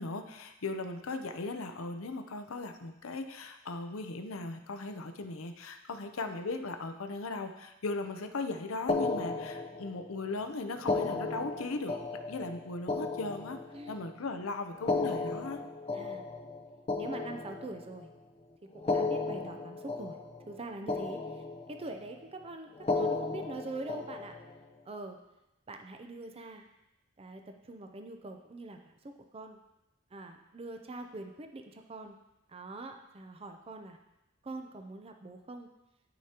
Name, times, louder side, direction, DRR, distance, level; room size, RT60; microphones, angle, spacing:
voice 1, 0.0-12.0 12.3-13.6 13.9-15.6, left 3 dB, 70° left, 7 dB, 0.7 m, -38 dB
sound 1, 8.9-10.1 10.8-14.1 14.7-18.0 18.7-20.6 20.9-21.9 22.8-24.6, left 3 dB, 30° left, 0.6 m, -34 dB
voice 2, 13.7-14.1 15.9-16.2 17.0-18.1 18.6-20.2 20.5-24.4 24.9-25.2 25.7-26.7 27.2-29.6 30.1-32.2 32.5-34.0 34.4-35.7, right 2 dB, 30° right, 5 dB, 0.5 m, -44 dB
12.5 x 5.0 x 2.9 m, 0.92 s
head